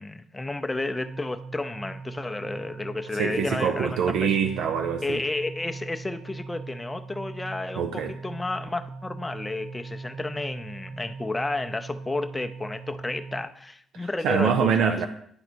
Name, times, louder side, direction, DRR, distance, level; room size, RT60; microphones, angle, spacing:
voice 1, 0.0-4.4 5.0-15.0, left 2 dB, 15° left, 7 dB, 0.5 m, -32 dB
sound 1, 0.7-13.4, right 4 dB, 60° right, 0.8 m, -40 dB
voice 2, 3.1-5.2 7.8-8.1 13.9-15.1, right 7 dB, 85° right, 7 dB, 0.5 m, -25 dB
9.6 x 4.0 x 4.4 m, 0.65 s
cardioid pair, 90°, 0 cm